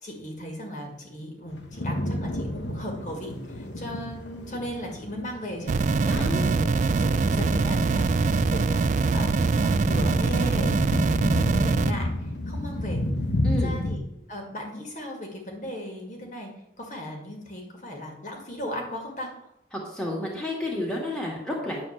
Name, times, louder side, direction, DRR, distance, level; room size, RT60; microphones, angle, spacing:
voice 1, 0.0-8.8 9.1-12.1 12.5-13.0 13.5-16.5 16.8-19.5, equal, 45° left, 1 dB, 2.0 m, -36 dB
sound 1, 1.5-14.0, left 1 dB, 80° left, 1.0 m, -32 dB
sound 2, 5.7-11.9, right 4 dB, 40° right, 0.3 m, -23 dB
voice 2, 6.1-6.4 13.4-13.7 19.9-21.8, left 1 dB, 5° left, -3 dB, 2.0 m, -30 dB
9.7 x 4.3 x 7.3 m, 0.79 s
head